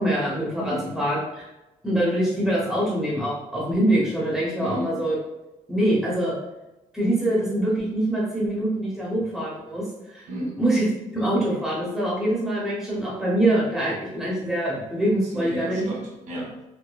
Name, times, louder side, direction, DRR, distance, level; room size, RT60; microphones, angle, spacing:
voice 1, 0.0-1.5 1.8-5.1 5.7-6.3 6.9-10.2 10.6-10.9 11.1-15.8, right 1 dB, 5° right, -6 dB, 0.9 m, -24 dB
voice 2, 0.6-1.1 4.6-5.2 10.3-10.7 15.2-16.6, equal, 65° right, -1 dB, 0.7 m, -34 dB
4.8 x 2.1 x 2.2 m, 0.99 s
cardioid pair, 175°, 13 cm